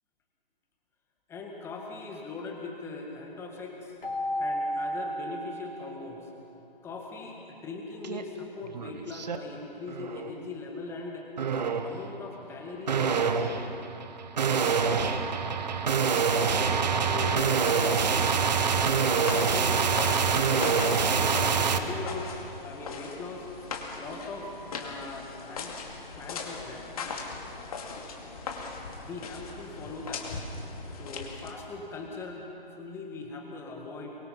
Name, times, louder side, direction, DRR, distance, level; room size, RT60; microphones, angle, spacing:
voice 1, 1.3-4.0 4.4-6.3 6.8-11.3 11.8-13.5 16.4-19.9 20.2-22.3 22.6-23.5 24.0-24.5 24.8-25.8 26.2-26.9 29.0-30.3 31.0-32.4 32.7-34.2, left 3 dB, 10° left, 1 dB, 1.7 m, -40 dB
Keyboard (musical), 4.0-6.6, equal, 65° left, 3.6 m, -33 dB
sound 1, 8.0-8.2 8.6-9.4 9.9-10.3 11.4-12.0 12.9-21.8, right 6 dB, 45° right, 1.3 m, -26 dB
sound 2, 18.4-31.7, left 4 dB, 40° left, 2.5 m, -39 dB
23.5 x 23.5 x 5.4 m, 2.8 s
figure-of-eight pair, 140°, 30 cm